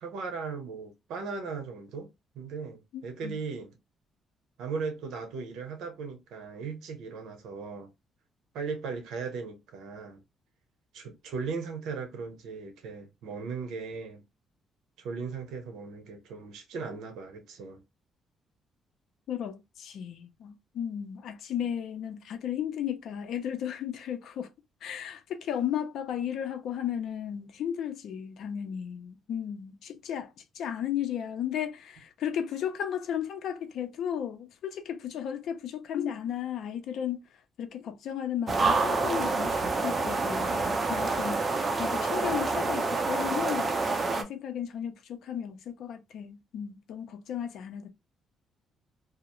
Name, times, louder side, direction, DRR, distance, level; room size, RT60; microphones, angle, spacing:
voice 1, 0.0-2.1 2.3-3.8 4.6-7.9 8.5-10.2 10.9-14.2 15.0-17.8, right 5 dB, 85° right, 0.7 m, -37 dB
voice 2, 2.9-3.4 19.3-24.5 24.8-30.3 30.6-37.2 37.6-47.9, left 9 dB, 70° left, 0.5 m, -34 dB
sound 1, 38.5-44.2, right 3 dB, 30° right, 0.5 m, -27 dB
2.4 x 2.0 x 2.9 m
cardioid pair, 120°, 0 cm